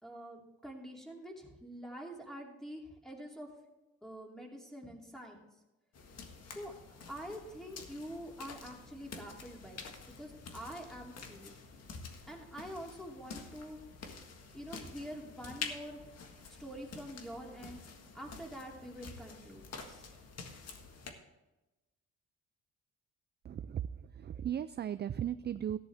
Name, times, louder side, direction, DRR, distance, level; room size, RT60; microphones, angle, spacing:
voice 1, 0.0-3.5 4.0-5.4 6.5-11.5 12.3-13.8 14.5-16.1 16.6-17.8 18.1-20.0, equal, ahead, 0 dB, 2.8 m, -46 dB
sound 1, 5.9-21.1, left 5 dB, 55° left, 1.7 m, -48 dB
voice 2, 23.4-25.8, right 10 dB, 35° right, 13 dB, 0.4 m, -37 dB
14.0 x 10.5 x 3.5 m, 1.1 s
cardioid pair, 90°, 30 cm